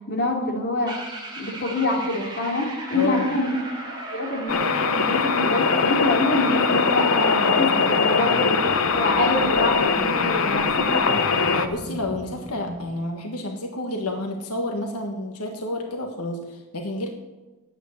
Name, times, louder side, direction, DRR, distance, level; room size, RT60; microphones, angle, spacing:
voice 1, 0.1-1.0 1.4-3.5 4.1-11.2, left 2 dB, 45° left, 0 dB, 2.8 m, -25 dB
sound 1, 0.9-12.9, right 1 dB, 20° right, 3.1 m, -36 dB
voice 2, 2.9-3.3 11.5-17.1, left 2 dB, 85° left, 3 dB, 1.6 m, -30 dB
sound 2, 4.5-11.7, left 5 dB, 70° left, 0.9 m, -21 dB
9.1 x 8.9 x 9.7 m, 1.1 s
head